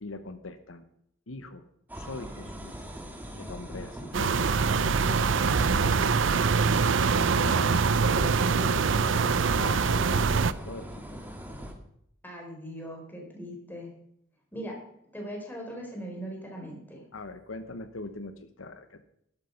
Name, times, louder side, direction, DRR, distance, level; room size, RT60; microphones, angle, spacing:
voice 1, 0.0-0.9 1.3-1.7 1.9-2.8 3.3-6.1 6.6-10.9 17.1-19.0, left 2 dB, 80° left, 10 dB, 1.0 m, -41 dB
sound 1, 1.9-11.7, equal, 10° right, 1.8 m, -41 dB
sound 2, 4.1-10.5, right 5 dB, 65° right, 0.6 m, -24 dB
voice 2, 12.2-13.9 14.5-14.8 15.1-17.0, equal, 10° left, 0 dB, 4.3 m, -39 dB
12.5 x 11.0 x 5.8 m, 0.73 s
head